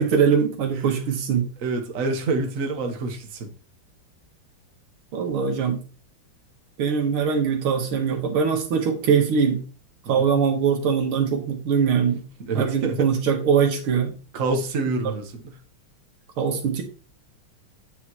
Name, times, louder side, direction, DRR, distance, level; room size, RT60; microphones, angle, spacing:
voice 1, 0.0-1.4 5.1-5.8 6.8-9.6 10.1-12.2 12.5-14.1 15.0-15.1 16.4-16.8, right 6 dB, 85° right, 3 dB, 2.3 m, -22 dB
voice 2, 1.6-3.5 10.1-10.3 12.4-13.1 14.3-15.5, right 3 dB, 45° right, 3 dB, 1.6 m, -27 dB
8.8 x 6.6 x 3.1 m, 0.35 s
omnidirectional pair, 2.3 m